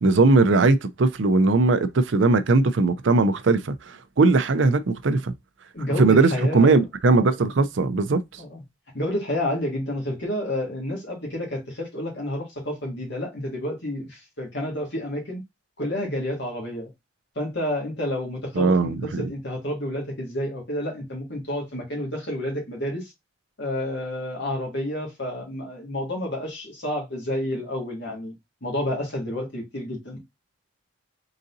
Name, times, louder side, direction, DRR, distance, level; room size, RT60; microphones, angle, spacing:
voice 1, 0.0-5.3 6.0-8.4 18.6-19.3, right 3 dB, 70° right, 0.5 m, -19 dB
voice 2, 5.7-6.8 8.4-8.6 8.9-15.4 15.8-16.9 17.3-23.1 23.6-28.3 28.6-30.2, left 1 dB, 60° left, 1.8 m, -30 dB
3.9 x 3.8 x 2.6 m
head